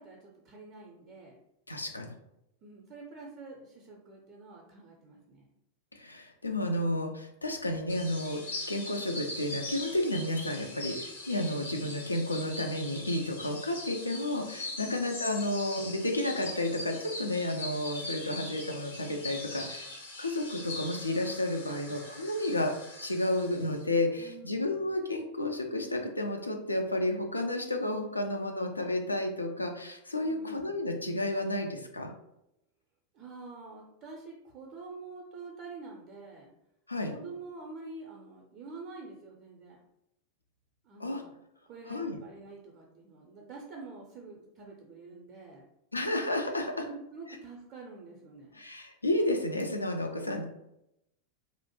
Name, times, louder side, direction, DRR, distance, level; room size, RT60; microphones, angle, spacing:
voice 1, 0.0-1.4 2.6-5.5 14.8-15.2 24.2-24.9 30.2-30.8 33.1-36.5 37.1-39.8 40.8-41.3 41.7-45.6 46.8-48.8, right 3 dB, 35° right, -2 dB, 0.4 m, -47 dB
voice 2, 1.7-2.1 5.9-8.4 8.7-19.9 20.2-22.7 23.0-32.1 36.9-37.1 41.0-41.2 41.9-42.2 45.9-46.8 48.5-50.4, left 1 dB, 80° left, 3 dB, 0.3 m, -31 dB
sound 1, 7.9-23.8, left 2 dB, 65° left, 0.9 m, -42 dB
2.5 x 2.1 x 2.9 m, 0.84 s
figure-of-eight pair, 90°, 0 cm